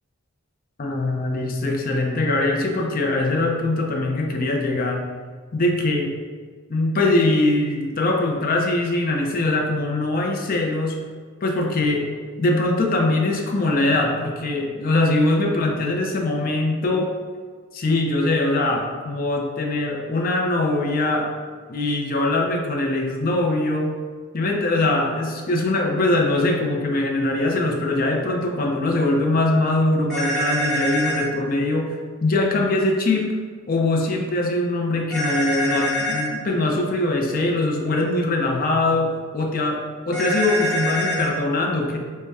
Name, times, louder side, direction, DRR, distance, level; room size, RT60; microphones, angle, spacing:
voice 1, 0.8-5.0 5.5-6.1 6.7-11.0 11.4-12.1 12.4-17.1 17.7-21.3 21.7-24.0 24.3-32.0 32.2-33.3 33.7-42.0, left 2 dB, 45° left, 1 dB, 0.5 m, -22 dB
sound 1, 30.1-31.2 35.1-36.3 40.1-41.3, equal, ahead, 1.0 m, -25 dB
5.3 x 2.1 x 3.5 m, 1.5 s
head